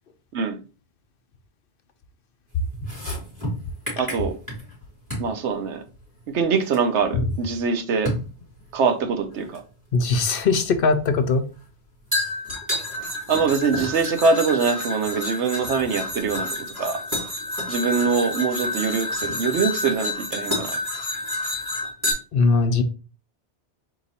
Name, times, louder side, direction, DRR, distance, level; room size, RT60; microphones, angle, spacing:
sound 1, 2.7-4.8 5.1-5.3 6.7-6.8 8.1-8.3 9.5-9.6 12.1-22.1, left 2 dB, 15° right, 2.7 m, -29 dB
voice 1, 4.0-4.4 5.2-5.8 6.3-8.1 8.7-9.6 13.3-16.5 16.8-17.0 17.7-20.7, right 5 dB, 85° right, 1.0 m, -23 dB
voice 2, 9.9-11.4 22.3-22.8, left 4 dB, 60° left, 0.7 m, -20 dB
4.1 x 2.9 x 4.0 m
omnidirectional pair, 1.1 m